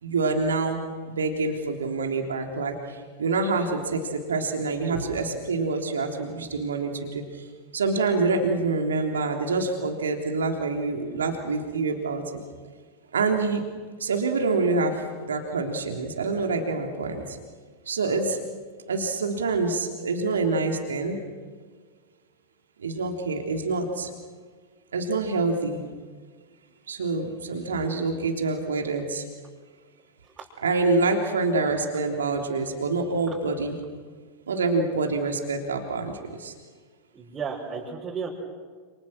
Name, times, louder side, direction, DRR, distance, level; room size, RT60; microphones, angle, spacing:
voice 1, 0.0-7.4 7.7-12.2 13.1-13.6 14.0-17.4 17.9-18.4 18.9-21.2 22.8-24.1 24.9-25.8 26.9-29.2 30.6-33.7 34.5-36.5, right 3 dB, 70° right, 3 dB, 3.4 m, -26 dB
voice 2, 37.1-38.3, right 6 dB, 20° right, -3 dB, 5.8 m, -33 dB
29.5 x 29.0 x 6.3 m, 1.5 s
figure-of-eight pair, 90°, 0 cm